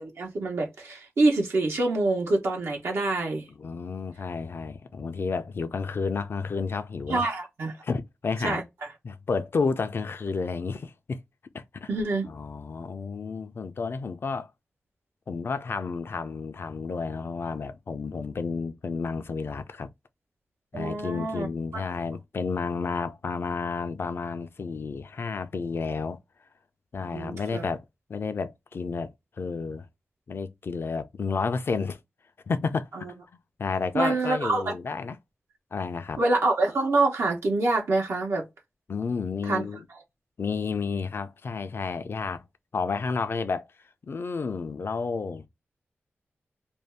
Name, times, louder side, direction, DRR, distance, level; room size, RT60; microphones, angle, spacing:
voice 1, 0.0-3.5 7.1-7.7 8.4-8.6 11.9-12.3 20.7-21.5 21.7-21.9 27.1-27.6 33.9-34.7 36.2-38.5 39.5-39.6, right 2 dB, 80° right, 0.9 m, -26 dB
voice 2, 3.5-7.3 7.8-8.6 9.0-11.2 11.5-11.9 12.3-14.5 15.3-19.9 20.7-26.2 26.9-29.1 29.4-29.9 30.3-32.0 32.5-32.9 33.6-35.2 35.7-36.2 38.9-39.8 40.4-42.4 42.7-43.7 44.1-45.5, left 4 dB, 60° left, 0.5 m, -31 dB
2.6 x 2.2 x 3.3 m
cardioid pair, 65°, 4 cm